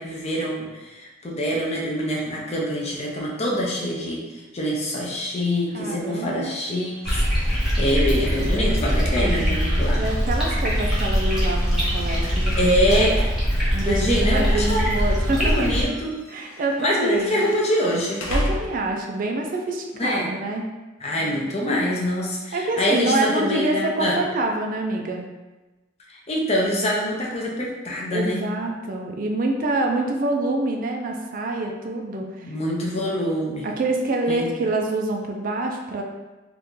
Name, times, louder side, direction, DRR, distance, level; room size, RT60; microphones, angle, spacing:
voice 1, 0.0-4.2 4.5-10.0 12.6-13.3 13.8-14.8 15.4-16.2 16.8-18.2 20.0-20.3 21.0-24.2 26.1-28.4 32.4-33.7 34.3-34.5, equal, 30° left, -3 dB, 0.5 m, -25 dB
voice 2, 5.7-6.5 9.9-13.0 13.7-15.7 16.3-17.4 18.3-20.7 22.5-25.2 28.1-32.5 33.6-36.0, right 2 dB, 45° right, 2 dB, 0.4 m, -26 dB
sound 1, 6.4-19.2, equal, 75° left, 0.5 m, -37 dB
sound 2, 7.0-15.8, equal, 5° right, 0.9 m, -22 dB
2.8 x 2.4 x 3.5 m, 1.1 s
head